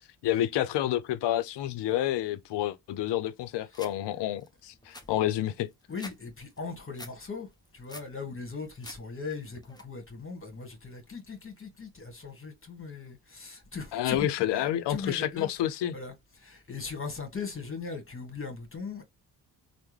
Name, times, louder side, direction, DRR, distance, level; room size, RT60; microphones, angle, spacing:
voice 1, 0.2-5.7 13.9-15.9, left 12 dB, 65° left, 0.6 m, -29 dB
sound 1, 3.7-3.9 4.4-4.5 4.7-6.2 6.5-7.1 7.5-8.1 8.5-9.0 9.3-9.8, left 1 dB, 10° left, 0.9 m, -46 dB
voice 2, 5.9-15.5 15.9-19.0, left 4 dB, 30° left, 1.5 m, -39 dB
3.4 x 2.2 x 3.1 m
supercardioid pair, 50°, 45 cm